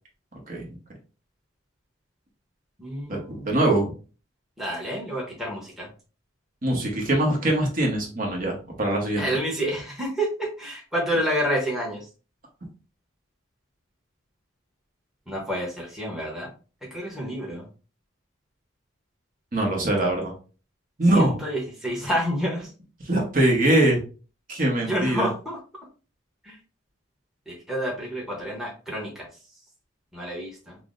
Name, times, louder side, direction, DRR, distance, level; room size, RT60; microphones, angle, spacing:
voice 1, 0.3-0.7 3.1-3.9 6.6-9.3 19.5-20.3 21.0-21.4 23.0-24.0 24.5-25.3, right 1 dB, 40° right, 0 dB, 1.0 m, -22 dB
voice 2, 2.8-3.6 4.6-5.9 9.2-12.0 15.3-16.5 16.9-17.7 21.1-22.7 24.8-25.6 26.4-26.6 27.5-29.3 30.1-30.8, equal, ahead, -3 dB, 0.9 m, -29 dB
5.6 x 2.0 x 2.5 m, 0.36 s
head